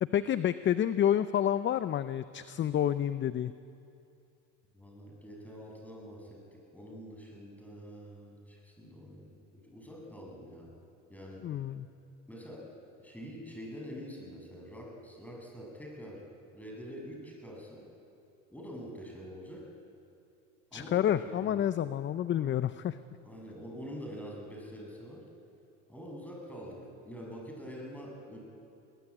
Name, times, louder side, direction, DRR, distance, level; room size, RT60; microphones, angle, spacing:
voice 1, 0.0-3.5 11.4-11.9 20.7-23.0, left 10 dB, 30° left, 14 dB, 0.6 m, -29 dB
voice 2, 4.7-10.8 11.1-11.5 12.3-12.7 13.0-16.3 16.5-17.8 18.5-19.7 20.7-21.6 23.2-25.2 25.9-28.4, equal, 5° left, -1 dB, 7.5 m, -45 dB
21.5 x 20.5 x 8.6 m, 2.6 s
hypercardioid pair, 90°, 40 cm